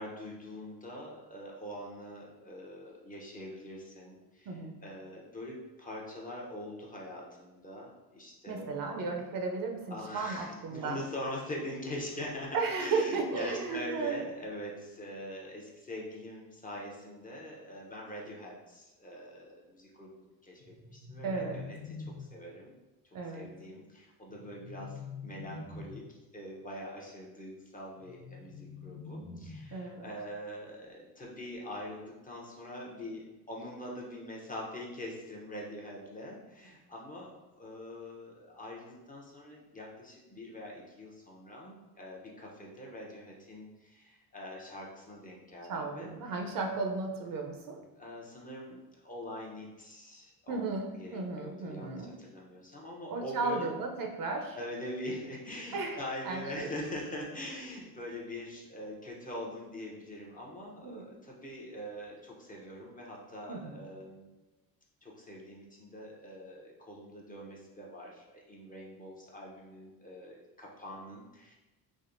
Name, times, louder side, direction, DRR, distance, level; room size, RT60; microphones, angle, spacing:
voice 1, 0.0-8.7 9.9-22.7 23.3-46.1 48.0-53.7 54.5-64.3 65.0-71.5, left 1 dB, 20° left, -3 dB, 0.6 m, -43 dB
voice 2, 4.5-4.8 8.5-11.0 12.5-14.2 21.2-21.6 23.1-23.5 29.7-30.1 45.7-47.8 50.5-52.1 53.1-54.6 55.7-56.7 60.8-61.1 63.5-63.8, right 4 dB, 50° right, 3 dB, 0.6 m, -35 dB
sound 1, 20.6-22.6 24.3-26.2 28.0-30.0, left 4 dB, 65° left, 0.9 m, -45 dB
3.4 x 2.1 x 2.5 m, 1.1 s
supercardioid pair, 80°, 42 cm